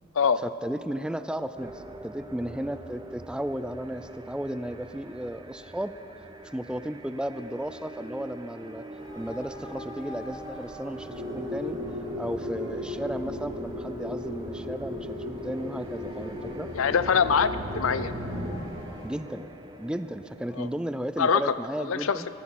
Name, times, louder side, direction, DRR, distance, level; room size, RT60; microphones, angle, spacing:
voice 1, 0.4-5.9 6.5-8.8 9.1-11.8 12.2-16.7 19.0-19.5 19.8-22.3, right 1 dB, 5° right, 12 dB, 0.4 m, -34 dB
sound 1, 1.6-21.0, right 1 dB, 20° right, 0.7 m, -44 dB
sound 2, 9.0-19.1, left 1 dB, 30° left, 4.4 m, -48 dB
sound 3, 11.1-18.6, left 1 dB, 75° right, 3.3 m, -35 dB
voice 2, 16.7-17.5 17.7-18.1 20.6-20.7 21.2-21.5 21.9-22.2, left 6 dB, 70° left, 14 dB, 0.5 m, -23 dB
19.5 x 15.0 x 4.2 m, 2.9 s
head